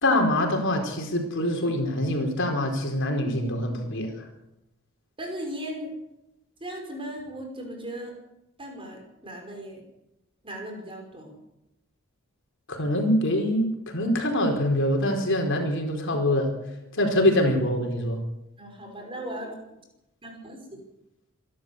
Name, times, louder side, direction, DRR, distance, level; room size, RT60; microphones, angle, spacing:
voice 1, 0.0-4.1 12.7-16.5 16.9-18.2, left 1 dB, 60° left, 2 dB, 4.5 m, -24 dB
voice 2, 5.2-5.9 6.6-8.1 8.6-9.8 10.4-11.4 18.6-19.5 20.2-20.6, right 1 dB, 25° right, 2 dB, 5.7 m, -37 dB
26.0 x 12.5 x 8.1 m, 0.89 s
head